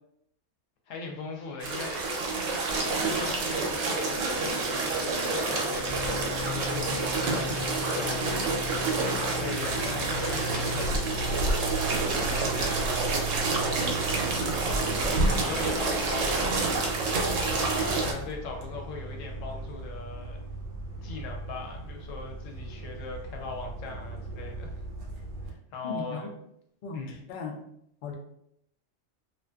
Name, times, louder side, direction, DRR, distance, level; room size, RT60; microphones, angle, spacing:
voice 1, 0.9-2.3 2.7-17.1 17.5-20.4 21.0-24.8 25.4-26.3 26.9-27.2, left 4 dB, 90° left, 2 dB, 1.0 m, -40 dB
sound 1, 1.6-18.1, right 3 dB, 85° right, 1.0 m, -28 dB
Fixed-wing aircraft airplane, 5.8-25.5, right 2 dB, 55° right, 0.6 m, -37 dB
voice 2, 25.8-26.3 26.8-27.6 28.0-28.1, left 4 dB, 65° left, 2 dB, 0.5 m, -36 dB
2.5 x 2.4 x 2.2 m, 0.75 s
omnidirectional pair, 1.3 m